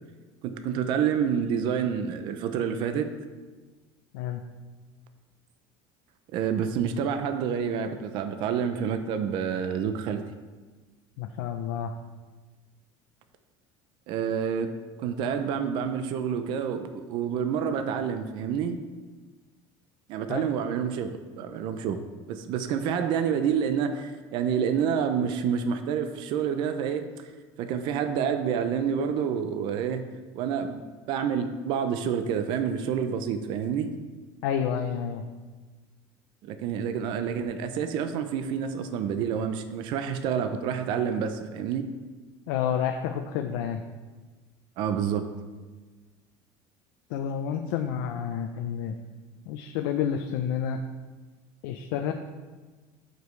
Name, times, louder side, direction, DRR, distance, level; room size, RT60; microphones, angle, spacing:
voice 1, 0.4-3.1 6.3-10.2 14.1-14.7 15.0-18.8 20.1-22.0 22.3-27.3 27.6-30.0 30.3-30.8 31.1-33.9 36.4-41.9 44.8-45.3, right 7 dB, 50° right, 8 dB, 0.5 m, -28 dB
voice 2, 11.2-11.9 20.3-20.5 34.4-35.2 42.5-43.8 47.1-48.9 49.5-50.8 51.6-52.1, left 8 dB, 85° left, 5 dB, 0.6 m, -29 dB
12.5 x 5.2 x 3.2 m, 1.3 s
cardioid pair, 170°, 11 cm